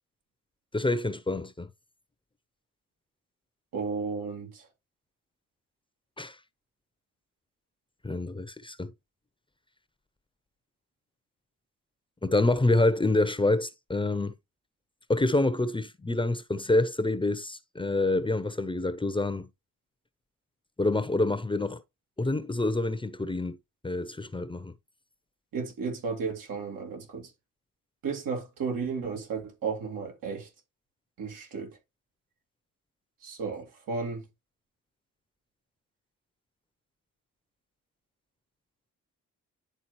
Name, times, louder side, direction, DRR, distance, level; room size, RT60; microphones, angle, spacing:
voice 1, 0.7-1.7 6.2-6.4 8.0-8.9 12.2-14.3 15.1-19.5 20.8-21.8 22.2-23.6 23.8-24.7, left 2 dB, 15° left, 0.8 m, -27 dB
voice 2, 3.7-4.7 25.5-27.3 28.0-30.5 31.2-31.8 33.2-34.3, right 5 dB, 80° right, 2.3 m, -33 dB
10.5 x 3.8 x 3.1 m
cardioid pair, 65°, 33 cm